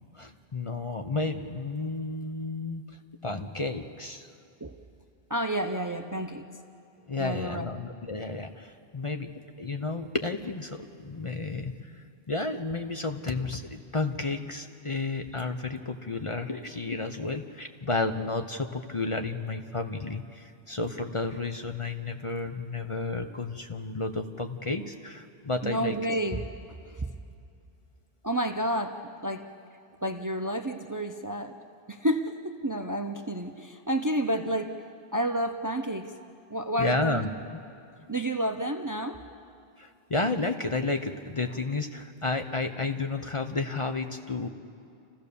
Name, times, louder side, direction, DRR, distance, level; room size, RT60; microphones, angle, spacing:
voice 1, 0.1-2.8 3.2-4.3 7.1-9.3 9.6-11.7 12.3-26.0 36.8-37.3 39.8-44.5, left 3 dB, 35° left, 6 dB, 0.8 m, -32 dB
voice 2, 5.3-6.5 7.2-7.7 25.6-26.5 26.8-27.1 28.2-29.5 30.0-31.6 31.9-34.8 35.1-36.2 36.5-37.4 38.1-39.2, right 1 dB, 20° right, 6 dB, 0.6 m, -30 dB
29.0 x 15.0 x 6.9 m, 2.5 s
omnidirectional pair, 1.0 m